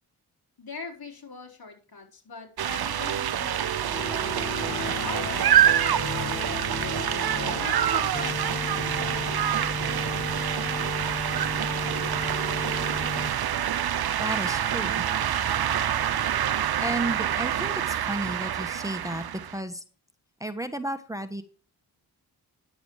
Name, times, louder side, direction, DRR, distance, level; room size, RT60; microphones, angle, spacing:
voice 1, 0.6-6.6 7.3-9.7, left 4 dB, 60° left, 2 dB, 4.2 m, -42 dB
sound 1, 2.6-19.6, right 10 dB, 65° right, 0.8 m, -26 dB
sound 2, 3.8-8.4, left 6 dB, 35° left, 0.8 m, -36 dB
sound 3, 8.1-13.3, left 4 dB, 20° left, 0.4 m, -35 dB
voice 2, 14.2-15.0 16.8-19.8 20.4-21.4, right 1 dB, 10° right, 9 dB, 1.3 m, -33 dB
10.5 x 8.0 x 4.8 m, 0.38 s
cardioid pair, 50°, 40 cm